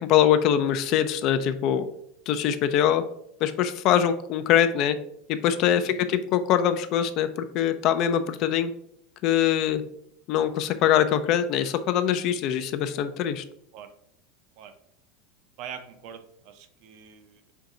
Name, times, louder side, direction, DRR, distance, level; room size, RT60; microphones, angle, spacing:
voice 1, 0.0-1.9 2.3-3.0 3.4-5.0 5.3-7.3 7.5-8.7 9.2-9.8 10.3-13.4, left 10 dB, 50° left, 11 dB, 0.4 m, -23 dB
voice 2, 5.8-6.2 13.7-13.9 14.6-14.7 15.6-17.5, right 8 dB, 60° right, 8 dB, 0.6 m, -43 dB
4.5 x 2.7 x 3.8 m, 0.72 s
supercardioid pair, 115°, 0 cm